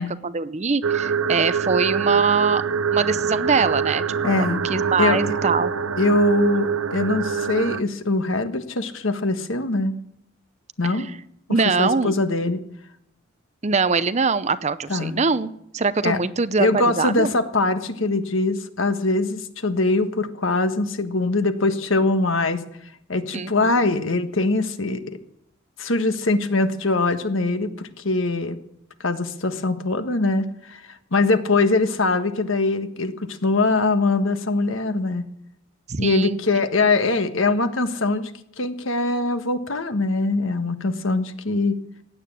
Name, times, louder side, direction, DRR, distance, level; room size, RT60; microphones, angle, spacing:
voice 1, 0.0-2.6 2.9-5.7 10.9-11.1 11.5-12.2 13.6-17.3 23.3-23.7 35.9-36.4, right 4 dB, 35° right, 14 dB, 0.6 m, -23 dB
sound 1, 0.8-7.8, right 6 dB, 90° right, 0.7 m, -24 dB
voice 2, 4.2-4.6 5.0-5.3 6.0-9.9 10.8-11.1 11.8-12.6 14.9-15.1 16.0-16.2 16.6-22.6 23.1-25.2 25.8-28.6 29.0-30.8 31.1-35.3 36.0-38.3 38.6-41.8, left 3 dB, 75° left, 9 dB, 1.4 m, -22 dB
16.0 x 9.5 x 8.6 m, 0.76 s
head